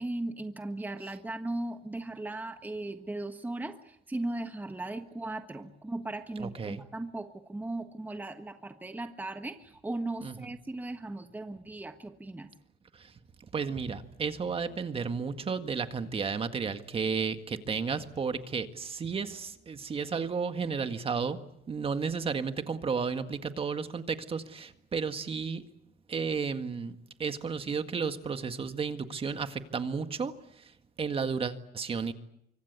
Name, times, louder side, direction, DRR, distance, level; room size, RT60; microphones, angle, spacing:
voice 1, 0.0-12.5, right 2 dB, 10° right, 7 dB, 1.4 m, -37 dB
voice 2, 6.4-6.8 10.2-10.3 12.9-13.1 13.5-21.4 21.7-25.6 26.1-32.1, right 5 dB, 35° right, 8 dB, 1.9 m, -33 dB
25.0 x 25.0 x 8.3 m, 0.78 s
cardioid pair, 110°, 17 cm